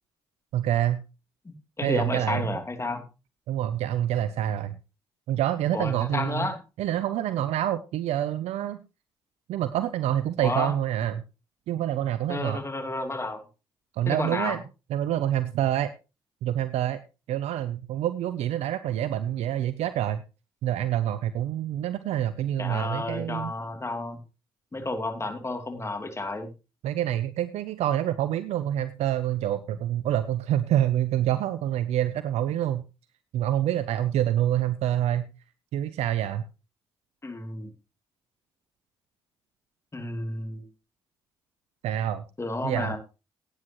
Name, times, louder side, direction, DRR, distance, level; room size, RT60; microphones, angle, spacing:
voice 1, 0.5-1.0 1.8-2.5 3.5-4.8 5.3-6.5 6.8-8.8 9.5-11.2 11.7-12.6 13.9-14.6 14.9-15.9 16.4-17.0 17.3-20.2 20.6-23.5 26.8-32.8 33.3-35.3 35.7-36.4 41.8-42.2 42.6-43.0, right 11 dB, 75° right, 14 dB, 0.6 m, -27 dB
voice 2, 1.4-3.0 5.7-6.6 10.4-10.7 12.3-13.4 14.1-14.6 22.6-24.2 24.7-26.5 37.2-37.7 39.9-40.6 42.4-43.0, left 2 dB, 25° left, 5 dB, 3.0 m, -31 dB
16.0 x 9.5 x 3.0 m, 0.30 s
supercardioid pair, 55°, 11 cm